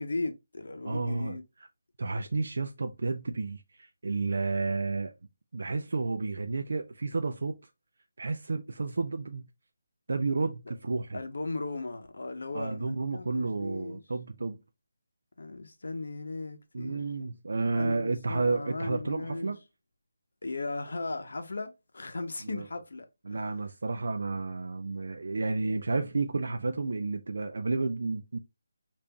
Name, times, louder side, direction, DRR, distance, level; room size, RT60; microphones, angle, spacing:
voice 1, 0.0-1.4 10.7-10.8 11.1-14.0 15.4-17.0 17.8-19.6 20.4-23.5, left 3 dB, 60° left, 0.7 m, -37 dB
voice 2, 0.8-1.4 2.0-5.1 5.5-7.6 8.2-9.5 10.1-11.2 12.5-14.6 16.7-19.6 22.5-22.6 23.3-28.4, right 3 dB, 50° right, 0.4 m, -31 dB
5.2 x 2.5 x 2.2 m
hypercardioid pair, 180°, 0 cm